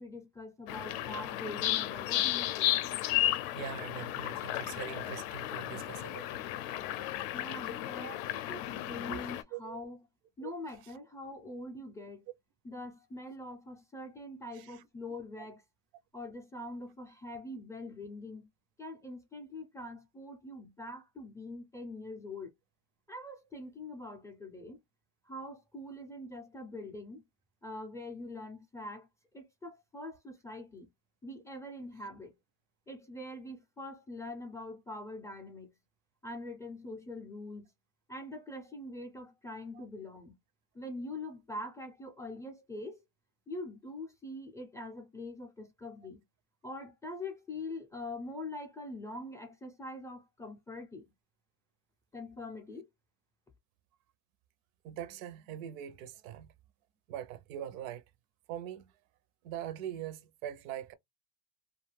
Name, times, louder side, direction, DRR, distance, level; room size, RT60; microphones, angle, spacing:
voice 1, 0.0-2.7 7.3-10.0 10.4-12.3 12.6-15.6 16.1-18.5 18.8-22.5 23.1-24.8 25.3-27.2 27.6-29.1 29.3-30.9 31.2-32.3 32.9-35.7 36.2-37.7 38.1-40.3 40.7-43.0 43.5-46.2 46.6-51.0 52.1-52.9, left 2 dB, 10° left, 0.4 m, -43 dB
sound 1, 0.7-9.4, left 14 dB, 70° left, 0.5 m, -34 dB
voice 2, 3.6-6.4 8.0-8.2 9.1-9.2 9.5-9.8 10.4-10.5 14.5-14.7 39.7-39.8 54.8-56.5 57.1-58.0 58.5-58.8 59.4-60.9, right 10 dB, 80° right, 0.6 m, -42 dB
2.4 x 2.3 x 3.1 m
cardioid pair, 135°, 40 cm